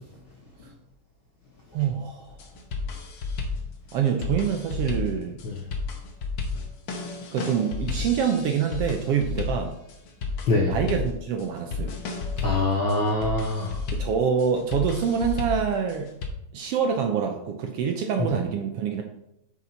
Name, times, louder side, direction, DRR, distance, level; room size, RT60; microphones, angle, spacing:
voice 1, 1.7-2.4 3.9-5.4 7.3-9.8 10.7-12.0 13.9-16.1 16.5-19.0, right 7 dB, 85° right, 3 dB, 1.3 m, -26 dB
sound 1, 2.3-16.3, left 4 dB, 85° left, 1.0 m, -33 dB
voice 2, 12.4-13.8 18.2-18.3, left 2 dB, 70° left, -1 dB, 1.2 m, -24 dB
8.5 x 6.0 x 4.1 m, 0.82 s
omnidirectional pair, 3.8 m